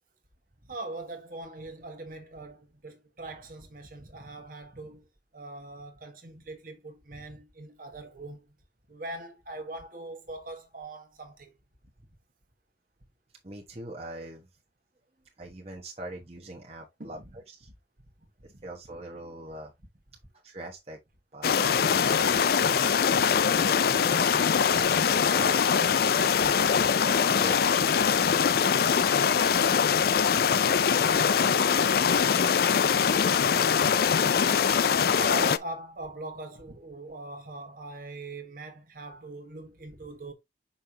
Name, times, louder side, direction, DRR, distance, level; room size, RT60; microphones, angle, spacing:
voice 1, 0.7-5.0 5.3-8.5 8.9-11.5 17.0-17.3 18.5-18.6 28.2-28.3 31.9-32.3 33.2-33.3 35.1-40.3, right 2 dB, 50° right, 1.4 m, -41 dB
voice 2, 13.4-14.5 15.4-17.7 18.4-19.7 20.4-21.0 21.3-23.1 23.5-24.2 24.6-28.2, right 1 dB, 35° right, 1.2 m, -43 dB
sound 1, 21.4-35.6, left 7 dB, 55° left, 0.4 m, -23 dB
6.3 x 5.6 x 2.8 m
head